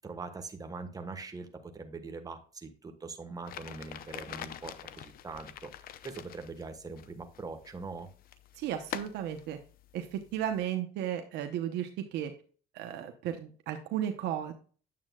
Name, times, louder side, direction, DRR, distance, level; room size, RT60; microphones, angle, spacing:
voice 1, 0.0-8.1, right 4 dB, 20° right, 6 dB, 1.3 m, -42 dB
sound 1, 3.5-10.6, left 11 dB, 60° left, 0.7 m, -46 dB
voice 2, 8.6-9.6 9.9-12.3 12.7-14.5, right 10 dB, 85° right, 6 dB, 0.9 m, -34 dB
9.5 x 7.3 x 2.3 m, 0.41 s
cardioid pair, 110°, 17 cm